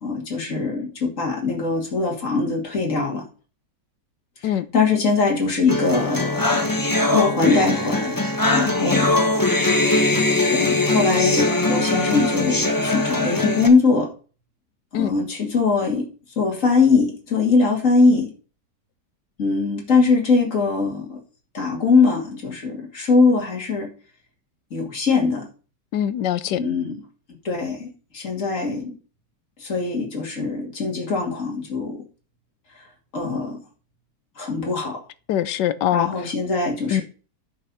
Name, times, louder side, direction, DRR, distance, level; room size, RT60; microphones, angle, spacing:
voice 1, 0.0-3.2 4.4-6.5 7.1-8.2 8.5-9.1 10.5-14.1 14.9-16.1 16.4-18.3 19.4-21.2 21.5-23.9 24.7-25.5 26.6-27.0 27.4-28.9 29.6-32.0 32.8-32.9 33.1-33.6 34.4-35.0 35.9-37.0, left 4 dB, 45° left, 2.8 m, -21 dB
sound 1, 5.7-13.7, left 2 dB, 15° left, 1.1 m, -21 dB
voice 2, 25.9-26.6 35.3-36.3 36.9-37.0, left 11 dB, 85° left, 1.4 m, -23 dB
10.5 x 5.6 x 5.5 m
omnidirectional pair, 1.8 m